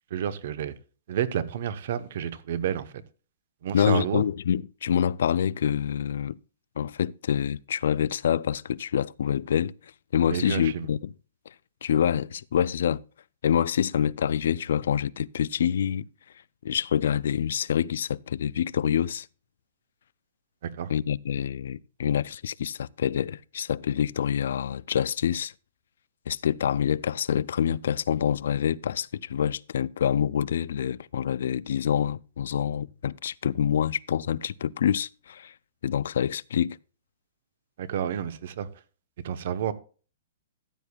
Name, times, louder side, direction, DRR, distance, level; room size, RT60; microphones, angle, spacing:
voice 1, 0.1-0.7 1.1-2.9 3.6-4.2 10.3-10.9 20.6-20.9 37.8-38.7 39.2-39.7, right 9 dB, 60° right, 1.0 m, -30 dB
voice 2, 3.7-6.4 6.8-9.7 10.1-11.1 11.8-13.0 13.4-16.1 16.6-19.3 20.9-25.5 26.3-35.5 35.8-36.8, left 9 dB, 75° left, 0.4 m, -26 dB
14.5 x 8.5 x 2.3 m
hypercardioid pair, 145°, 0 cm